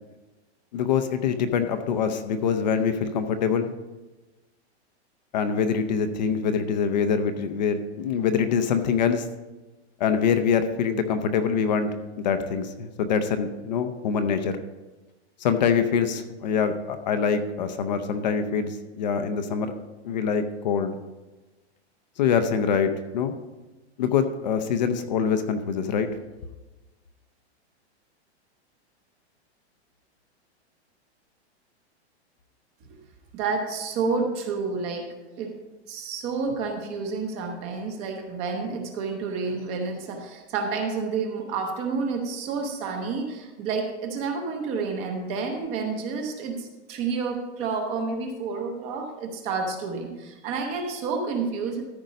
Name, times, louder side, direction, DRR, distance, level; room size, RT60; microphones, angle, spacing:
voice 1, 0.7-3.7 5.3-9.3 10.0-14.6 15.4-19.7 20.0-20.9 22.2-23.3 24.0-26.1, left 6 dB, 40° left, 8 dB, 0.6 m, -24 dB
voice 2, 33.3-35.6 35.9-51.8, right 4 dB, 20° right, 4 dB, 0.7 m, -30 dB
13.5 x 5.2 x 5.2 m, 1.1 s
supercardioid pair, 175°, 34 cm